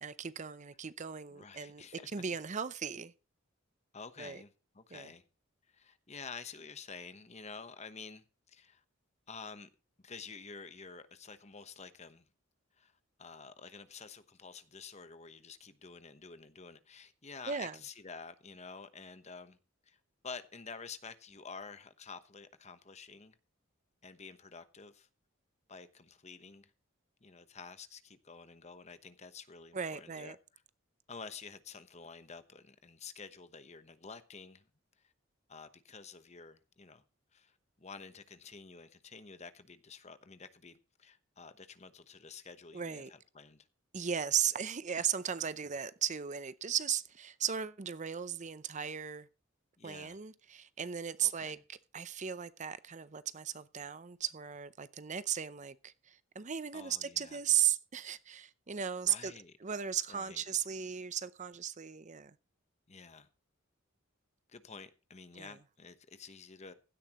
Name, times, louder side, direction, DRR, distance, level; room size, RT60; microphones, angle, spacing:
voice 1, 0.0-1.8 2.1-3.1 4.2-4.4 4.9-5.1 17.5-17.8 29.7-30.4 42.7-43.1 43.9-49.3 49.8-59.3 59.6-62.3 65.4-65.6, right 8 dB, 35° right, 0.6 m, -36 dB
voice 2, 1.3-2.1 3.9-5.2 5.7-8.8 9.3-9.7 10.0-12.3 12.8-12.9 13.2-19.6 19.9-20.0 20.2-23.3 24.0-25.1 25.7-26.7 27.2-30.6 31.1-34.6 35.5-37.0 37.3-43.7 49.8-50.2 51.2-51.6 56.7-57.4 59.0-59.5 60.1-60.4 62.9-63.3 64.5-66.7, left 5 dB, 35° left, 1.0 m, -50 dB
16.0 x 12.5 x 3.0 m
head